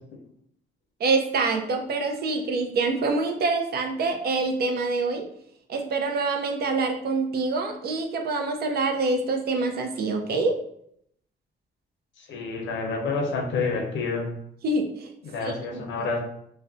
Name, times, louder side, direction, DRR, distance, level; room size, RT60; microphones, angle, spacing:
voice 1, 1.0-5.3 5.7-10.6 14.6-15.1 15.4-16.1, right 3 dB, 55° right, 4 dB, 0.4 m, -26 dB
voice 2, 12.2-14.3 15.2-16.2, left 4 dB, 70° left, 1 dB, 0.6 m, -28 dB
2.4 x 2.1 x 2.5 m, 0.71 s
cardioid pair, 90°, 20 cm